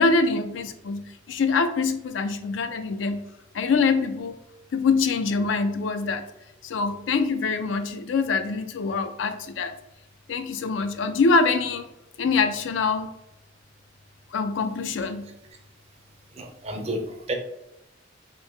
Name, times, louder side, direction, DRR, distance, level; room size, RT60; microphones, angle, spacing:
voice 1, 0.0-3.2 3.5-4.3 4.7-6.2 6.6-9.8 10.3-11.8 12.2-13.1 14.3-15.2, left 4 dB, 80° left, 0.4 m, -24 dB
voice 2, 15.2-15.6 16.3-17.3, right 1 dB, 35° right, 0.5 m, -32 dB
2.9 x 2.7 x 3.3 m
head